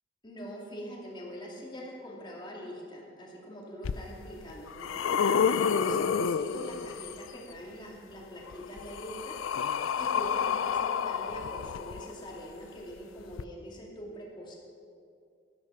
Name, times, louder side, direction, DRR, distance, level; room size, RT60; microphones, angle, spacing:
voice 1, 0.2-9.4 10.0-14.6, equal, 25° left, -3 dB, 2.3 m, -43 dB
sound 1, 3.8-3.9 4.5-7.3 8.5-12.4 13.3-13.4, left 7 dB, 85° left, 0.4 m, -29 dB
11.5 x 10.5 x 5.6 m, 2.4 s
head